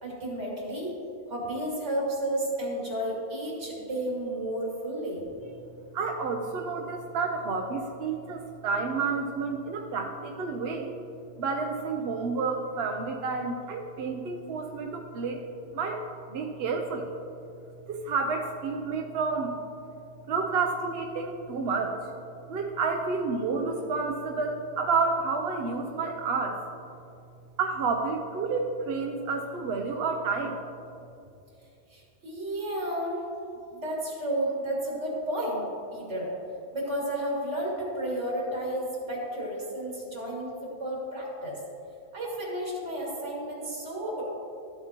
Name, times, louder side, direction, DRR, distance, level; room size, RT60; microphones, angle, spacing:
voice 1, 0.0-0.9 1.3-5.2 31.9-33.2 33.7-36.3 36.7-41.6 42.1-44.2, right 1 dB, 85° right, -4 dB, 2.5 m, -32 dB
voice 2, 5.9-10.9 11.4-15.4 15.7-16.0 16.3-17.1 17.9-19.6 20.3-22.0 22.5-26.6 27.6-30.6, right 4 dB, 65° right, 3 dB, 0.8 m, -30 dB
13.0 x 7.8 x 2.9 m, 2.7 s
omnidirectional pair, 1.2 m